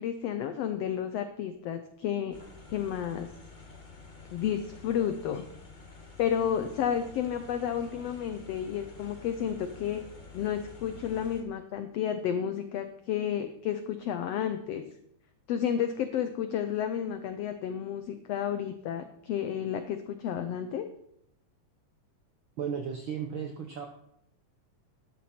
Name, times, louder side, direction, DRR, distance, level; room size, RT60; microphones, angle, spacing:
voice 1, 0.0-2.4 2.7-3.3 4.3-5.4 6.2-10.0 10.3-14.8 15.5-20.9, left 9 dB, 85° left, 9 dB, 1.4 m, -31 dB
sound 1, 2.3-11.4, left 3 dB, 60° left, 0.5 m, -49 dB
voice 2, 22.6-23.9, right 7 dB, 70° right, 3 dB, 1.2 m, -34 dB
12.5 x 10.0 x 4.3 m, 0.74 s
omnidirectional pair, 3.8 m